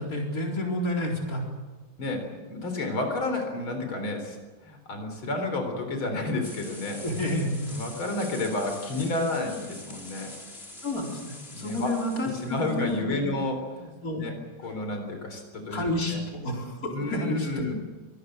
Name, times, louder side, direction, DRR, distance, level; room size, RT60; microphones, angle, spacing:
voice 1, 0.0-1.5 7.0-7.7 10.8-13.3 14.0-14.3 15.7-17.7, left 1 dB, 45° left, 0 dB, 4.7 m, -30 dB
voice 2, 2.0-4.4 4.6-7.0 7.7-10.3 11.5-16.2 16.9-17.7, left 2 dB, 90° left, 5 dB, 4.8 m, -31 dB
sound 1, 6.4-13.0, left 2 dB, 30° left, 4.2 m, -45 dB
24.5 x 20.5 x 8.0 m, 1.2 s
omnidirectional pair, 2.2 m